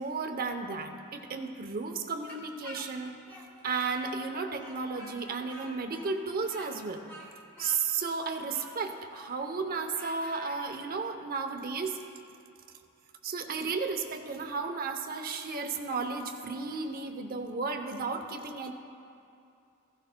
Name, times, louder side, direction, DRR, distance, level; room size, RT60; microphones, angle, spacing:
voice 1, 0.0-3.2 3.6-7.0 7.6-12.0 13.2-18.7, right 4 dB, 45° right, 6 dB, 0.7 m, -33 dB
Speech, 2.3-4.3 4.6-10.6, equal, 10° left, 1.7 m, -48 dB
16.0 x 15.5 x 2.2 m, 2.6 s
head